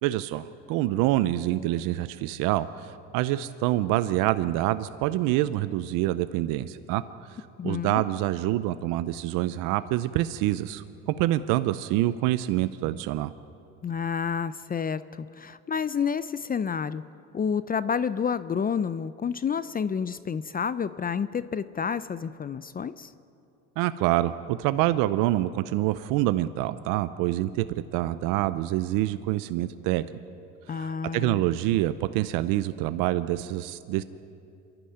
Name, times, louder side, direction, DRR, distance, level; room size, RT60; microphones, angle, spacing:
voice 1, 0.0-7.0 7.6-13.3 23.8-27.7 27.9-30.0 30.7-34.0, right 15 dB, 80° right, 13 dB, 0.7 m, -26 dB
voice 2, 7.6-8.0 13.8-17.0 17.3-23.1 30.7-31.4, left 6 dB, 25° left, 15 dB, 0.6 m, -29 dB
26.5 x 12.0 x 9.3 m, 2.6 s
supercardioid pair, 85°, 32 cm